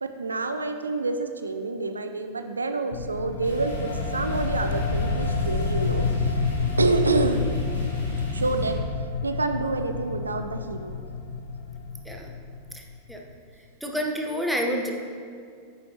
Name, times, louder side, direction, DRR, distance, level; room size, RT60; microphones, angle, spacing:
voice 1, 0.0-6.4 6.8-7.5 8.3-8.8 9.2-10.9, right 3 dB, 75° right, 8 dB, 0.3 m, -27 dB
sound 1, 2.9-13.1, left 5 dB, 60° left, 0.5 m, -29 dB
sound 2, 3.4-8.7, equal, 90° left, 1.8 m, -34 dB
voice 2, 13.8-14.9, equal, ahead, 1 dB, 0.8 m, -28 dB
8.4 x 6.3 x 2.8 m, 2.3 s
figure-of-eight pair, 90°, 0 cm